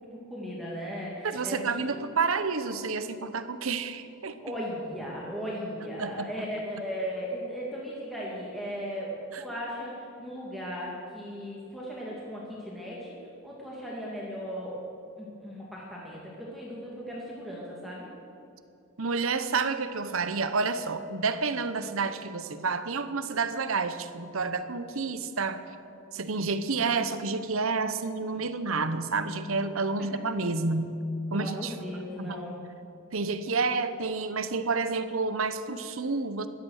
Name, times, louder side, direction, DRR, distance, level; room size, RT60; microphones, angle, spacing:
voice 1, 0.3-2.0 4.4-14.8 15.2-18.1 28.2-28.5 31.3-32.6, equal, ahead, -6 dB, 2.2 m, -37 dB
voice 2, 1.2-4.4 6.0-6.3 9.3-9.4 19.0-25.6 26.1-31.0 31.3-31.7 32.2-32.4 33.1-36.5, right 4 dB, 65° right, 11 dB, 0.9 m, -29 dB
17.0 x 12.0 x 6.5 m, 2.7 s
head